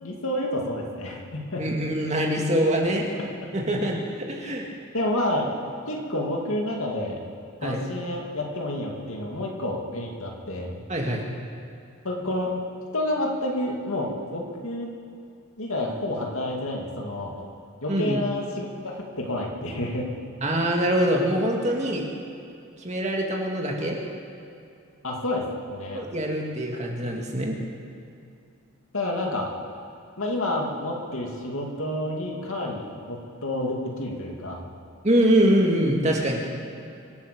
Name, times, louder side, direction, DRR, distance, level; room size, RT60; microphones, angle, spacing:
voice 1, 0.0-1.6 4.9-5.5 5.9-7.2 7.6-10.8 12.0-12.5 12.9-14.9 15.6-17.3 17.8-20.1 25.0-26.0 28.9-29.5 30.2-34.6, left 1 dB, 65° left, 0 dB, 2.5 m, -29 dB
voice 2, 1.6-3.1 3.5-4.6 7.6-7.8 10.9-11.3 17.9-18.2 20.4-22.0 22.8-24.0 25.9-27.6 35.0-36.4, right 1 dB, 30° right, 0 dB, 2.1 m, -24 dB
24.5 x 8.4 x 6.8 m, 2.6 s
head